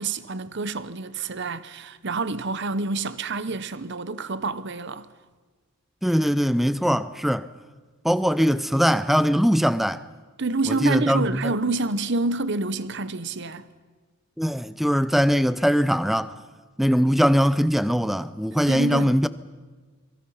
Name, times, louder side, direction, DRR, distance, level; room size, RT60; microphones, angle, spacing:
voice 1, 0.0-5.1 10.4-13.7 18.7-19.2, right 3 dB, 55° right, 0.9 m, -28 dB
voice 2, 6.0-7.5 8.0-10.0 10.7-11.5 14.4-16.3 16.8-19.3, equal, ahead, 0.6 m, -21 dB
27.5 x 24.0 x 5.7 m
head